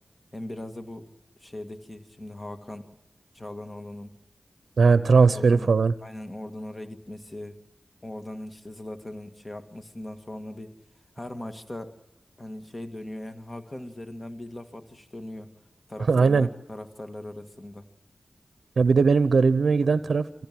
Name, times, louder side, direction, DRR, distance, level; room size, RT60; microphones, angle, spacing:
voice 1, 0.3-1.1 1.4-2.9 3.3-4.1 5.2-5.7 6.0-7.6 8.0-10.7 11.2-12.0 12.4-15.5 15.9-17.9, left 1 dB, 35° left, 7 dB, 2.0 m, -39 dB
voice 2, 4.8-5.9 16.1-16.5 18.8-20.5, right 4 dB, 80° right, 14 dB, 0.6 m, -19 dB
23.5 x 15.0 x 7.6 m, 0.96 s
cardioid pair, 45°, 0 cm